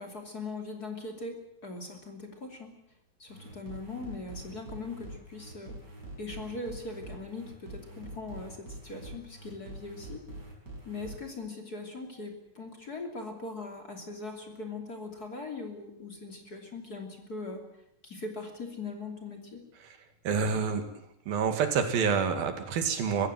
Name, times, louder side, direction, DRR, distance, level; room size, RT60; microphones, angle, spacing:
voice 1, 0.0-2.7 3.2-5.8 6.2-10.2 10.8-17.6 18.0-19.6, left 3 dB, 30° left, 3 dB, 3.0 m, -40 dB
sound 1, 3.3-11.2, right 2 dB, 30° right, 5.9 m, -45 dB
voice 2, 20.3-20.9 21.3-23.3, right 6 dB, 85° right, 7 dB, 4.0 m, -27 dB
23.0 x 15.5 x 9.2 m, 0.80 s
omnidirectional pair, 4.1 m